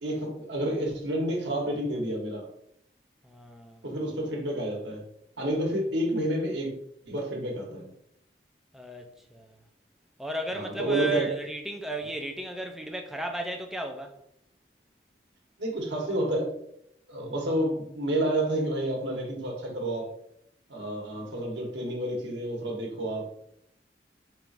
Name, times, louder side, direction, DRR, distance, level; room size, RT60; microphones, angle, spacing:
voice 1, 0.0-2.4 3.8-5.0 5.4-6.7 7.1-7.9 10.5-11.3 15.6-16.5 17.1-20.1 20.7-23.3, right 1 dB, 90° right, 1.2 m, -29 dB
voice 2, 3.2-3.9 8.7-9.6 10.2-14.1 21.1-21.5, right 2 dB, ahead, 0.4 m, -35 dB
4.5 x 3.5 x 2.5 m
head